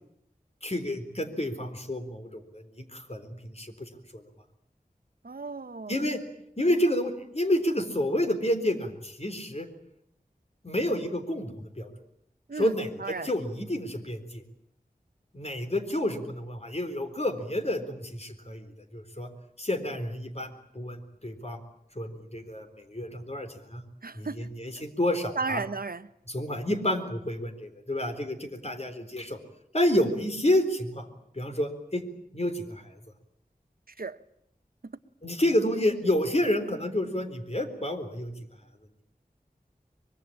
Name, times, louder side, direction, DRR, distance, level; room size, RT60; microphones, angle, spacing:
voice 1, 0.6-4.2 5.9-6.2 6.6-9.7 10.6-11.9 12.5-14.4 15.3-19.3 19.6-21.6 22.0-23.8 24.1-25.6 26.3-29.4 29.7-31.1 31.3-32.0 32.3-33.0 35.2-38.3, left 1 dB, 45° left, 4.0 m, -29 dB
voice 2, 5.2-5.9 12.5-12.7 13.0-13.3 24.0-24.4 25.3-26.1 34.0-34.2 34.8-34.9, right 4 dB, 70° right, 1.0 m, -34 dB
24.5 x 22.0 x 8.8 m
wide cardioid pair, 45°, 16 cm